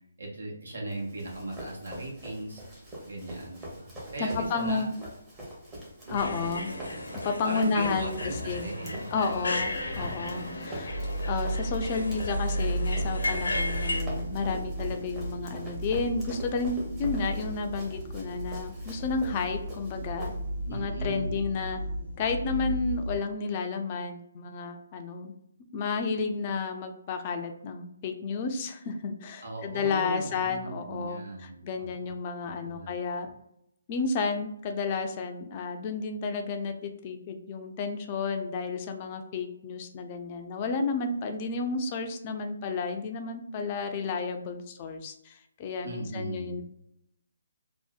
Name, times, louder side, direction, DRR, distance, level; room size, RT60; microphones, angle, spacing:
voice 1, 0.2-2.6 3.1-5.1 6.0-6.6 7.4-9.1 9.5-10.4 20.6-21.5 29.4-32.1 32.4-33.1 45.8-46.6, right 2 dB, 85° right, -1 dB, 1.0 m, -38 dB
Run, 0.9-20.8, equal, 15° right, 0.7 m, -44 dB
voice 2, 4.2-4.9 6.1-6.7 7.2-8.7 9.1-11.0 11.3-20.3 20.7-21.8 22.2-25.3 25.7-33.3 33.9-46.6, left 4 dB, 30° left, 5 dB, 0.3 m, -32 dB
sound 1, 6.2-14.0, left 2 dB, 85° left, 0.5 m, -35 dB
sound 2, 10.9-23.2, right 1 dB, 50° right, 0.5 m, -34 dB
2.6 x 2.0 x 2.4 m, 0.78 s
hypercardioid pair, 150°, 0 cm